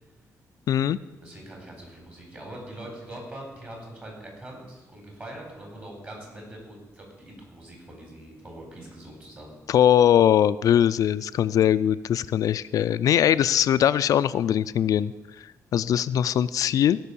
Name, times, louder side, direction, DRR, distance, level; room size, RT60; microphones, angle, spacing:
voice 1, 0.7-1.0 9.7-15.1 15.7-17.0, left 10 dB, 75° left, 13 dB, 0.3 m, -21 dB
voice 2, 1.2-9.6, right 1 dB, 30° right, 0 dB, 4.3 m, -42 dB
17.0 x 5.9 x 7.0 m, 1.1 s
wide cardioid pair, 140°, 6 cm